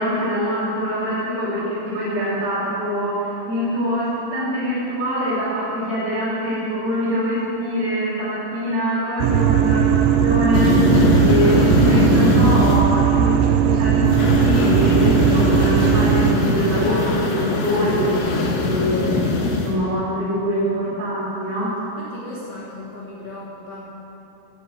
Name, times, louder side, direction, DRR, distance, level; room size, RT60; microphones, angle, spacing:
voice 1, 0.0-18.1 18.6-21.7, equal, 55° right, -12 dB, 6.1 m, -24 dB
sound 1, 9.2-16.4, right 9 dB, 80° right, 2.9 m, -18 dB
sound 2, 10.5-12.8 14.1-19.7, left 3 dB, 55° left, 2.6 m, -20 dB
voice 2, 11.5-12.0 21.5-21.7 22.0-23.9, left 1 dB, 75° left, -6 dB, 1.3 m, -37 dB
14.5 x 7.8 x 8.7 m, 2.8 s
omnidirectional pair, 5.9 m